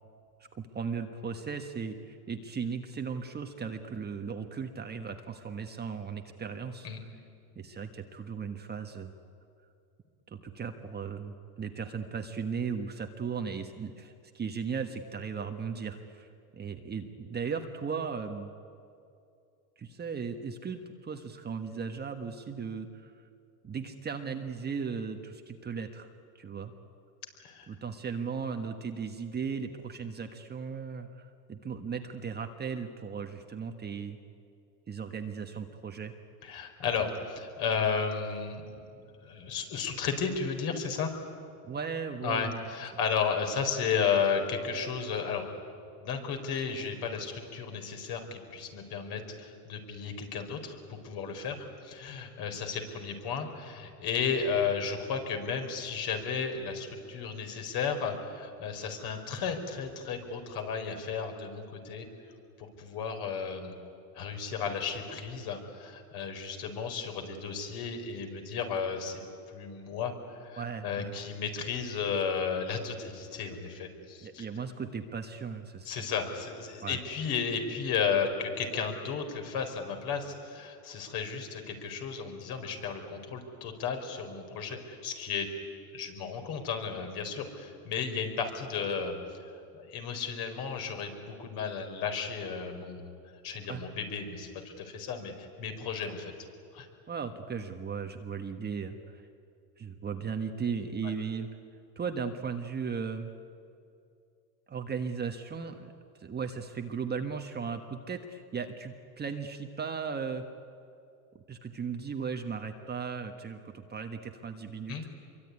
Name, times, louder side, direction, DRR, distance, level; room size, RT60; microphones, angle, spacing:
voice 1, 0.5-6.9 7.5-9.1 10.3-16.3 16.6-18.5 19.8-23.1 23.6-26.1 26.3-26.7 27.7-34.2 34.9-36.1 41.6-42.6 70.6-71.2 74.2-76.1 76.8-77.0 93.7-93.8 97.1-99.3 99.8-101.5 101.9-103.3 104.7-105.9 106.2-110.4 111.5-115.1, right 6 dB, 20° right, 5 dB, 1.4 m, -37 dB
voice 2, 36.4-41.1 42.2-45.5 46.0-51.6 51.8-62.1 62.6-63.7 64.1-69.2 69.5-74.4 75.8-85.5 85.9-89.1 89.7-93.1 93.4-96.3 96.7-96.9 114.9-115.0, left 6 dB, 50° left, 4 dB, 4.8 m, -33 dB
25.5 x 23.5 x 9.7 m, 2.5 s
supercardioid pair, 125°, 47 cm